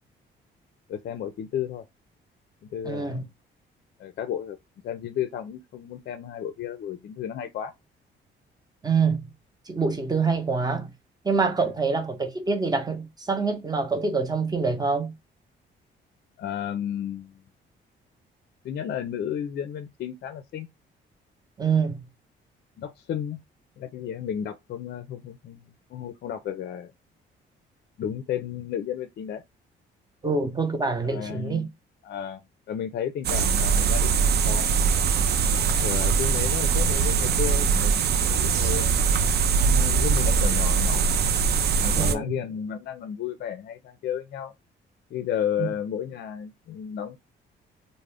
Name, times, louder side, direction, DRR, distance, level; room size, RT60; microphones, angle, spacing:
voice 1, 0.9-1.8 2.7-3.3 4.0-4.6 4.8-7.7 16.4-17.4 18.6-20.7 22.8-23.4 23.8-25.6 25.9-26.9 28.0-29.4 31.0-31.7 32.0-32.4 32.7-34.9 35.8-39.1 39.6-41.2 41.8-44.5 45.1-47.2, left 9 dB, 55° left, 0.4 m, -33 dB
voice 2, 2.8-3.2 8.8-9.3 9.7-10.9 11.2-15.1 21.6-22.0 30.2-31.7 42.0-42.3 45.6-45.7, right 4 dB, 20° right, 0.6 m, -25 dB
sound 1, 33.2-42.1, right 6 dB, 55° right, 0.4 m, -22 dB
2.4 x 2.0 x 3.3 m
cardioid pair, 90°, 20 cm